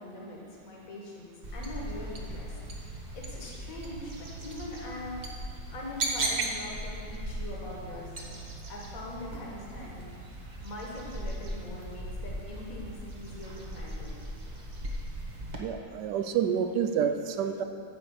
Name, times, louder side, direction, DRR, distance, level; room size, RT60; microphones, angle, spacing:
voice 1, 0.0-2.6 3.1-5.2 5.5-14.1, left 1 dB, 55° left, -3 dB, 1.8 m, -42 dB
sound 1, 1.4-15.6, right 1 dB, 35° right, 0.8 m, -38 dB
voice 2, 15.6-17.6, right 8 dB, 90° right, 8 dB, 1.2 m, -28 dB
9.1 x 4.6 x 6.9 m, 2.6 s
omnidirectional pair, 1.7 m